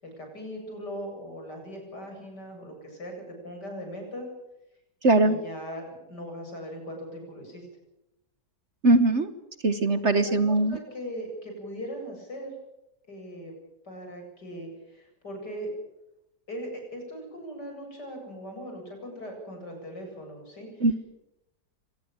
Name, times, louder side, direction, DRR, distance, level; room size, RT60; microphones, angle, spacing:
voice 1, 0.0-4.3 5.2-7.7 10.3-12.5 13.1-13.5 13.8-15.7 16.5-20.9, equal, 70° left, 3 dB, 8.5 m, -39 dB
voice 2, 5.0-5.4 8.8-9.3 9.6-10.8 20.8-21.0, right 2 dB, 45° right, 11 dB, 1.4 m, -21 dB
25.0 x 19.5 x 9.0 m, 0.90 s
omnidirectional pair, 1.9 m